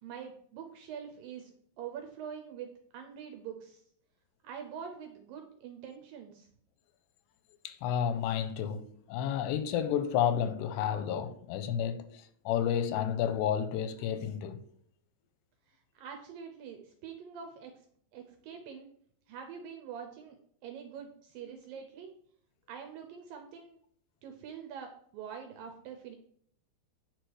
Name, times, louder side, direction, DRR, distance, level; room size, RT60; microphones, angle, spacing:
voice 1, 0.0-3.8 4.4-6.5 15.7-17.8 18.1-18.9 19.3-22.1 22.7-23.8 24.2-26.1, right 7 dB, 80° right, 2.1 m, -45 dB
voice 2, 7.6-14.6, left 9 dB, 90° left, 2.8 m, -31 dB
9.1 x 4.7 x 4.7 m
omnidirectional pair, 4.8 m